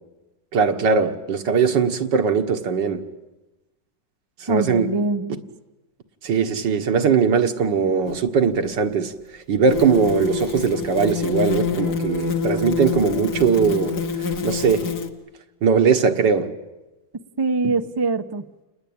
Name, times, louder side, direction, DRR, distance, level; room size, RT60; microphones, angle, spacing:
voice 1, 0.5-3.0 4.4-4.9 6.2-9.1 9.5-14.0 14.4-14.9 15.6-16.5, right 6 dB, 75° right, 2.1 m, -20 dB
voice 2, 4.5-5.3 17.4-18.6, right 3 dB, 25° right, 0.6 m, -23 dB
sound 1, 8.1-8.2 9.7-15.1, left 6 dB, 60° left, 2.1 m, -26 dB
29.0 x 20.5 x 8.8 m
omnidirectional pair, 2.0 m